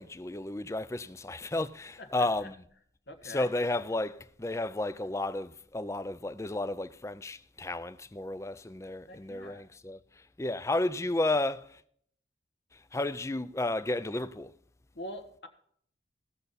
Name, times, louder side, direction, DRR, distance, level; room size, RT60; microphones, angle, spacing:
voice 1, 0.0-2.6 3.2-10.0 10.4-11.7 12.9-14.5, left 2 dB, 15° left, 0.4 m, -32 dB
voice 2, 2.0-2.5 3.1-3.5 9.1-9.6 14.9-15.5, left 1 dB, 75° left, 1.5 m, -44 dB
17.0 x 6.7 x 4.1 m
head